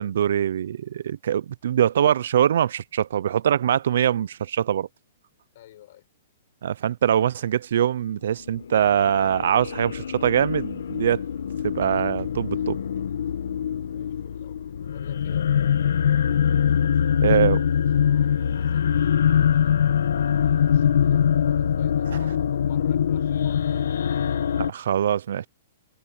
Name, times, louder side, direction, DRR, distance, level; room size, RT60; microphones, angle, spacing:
voice 1, 0.0-4.9 6.6-11.2 11.6-12.8 17.2-17.6 24.7-25.5, right 9 dB, 65° right, 0.5 m, -23 dB
voice 2, 5.5-6.1 13.9-14.6 14.9-15.5 17.7-24.3, left 13 dB, 50° left, 7.2 m, -50 dB
sound 1, 8.5-24.7, left 8 dB, 85° left, 1.2 m, -23 dB
hypercardioid pair, 160°, 0 cm